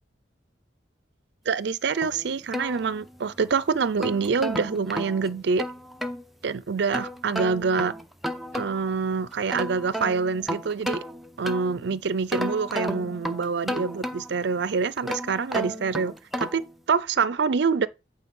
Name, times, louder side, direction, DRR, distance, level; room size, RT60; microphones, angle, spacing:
voice 1, 1.5-5.6 6.4-7.9 8.5-11.0 11.4-17.9, right 5 dB, 70° right, 0.5 m, -26 dB
sound 1, 2.0-3.4 3.8-6.2 6.9-9.0 9.3-11.8 12.3-14.5 15.0-16.7, equal, ahead, 0.7 m, -33 dB
8.5 x 3.9 x 5.4 m
head